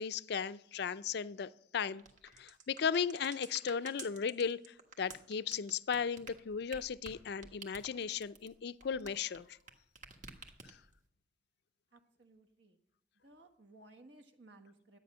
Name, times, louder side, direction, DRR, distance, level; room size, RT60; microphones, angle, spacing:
voice 1, 0.0-2.0 2.4-9.5, left 6 dB, 60° left, 15 dB, 0.4 m, -36 dB
sound 1, 2.0-9.7 10.0-11.0, right 4 dB, 45° right, 1.5 m, -51 dB
voice 2, 11.9-12.8 13.1-15.0, right 2 dB, 65° right, 5 dB, 1.5 m, -59 dB
12.0 x 9.0 x 6.2 m, 0.73 s
head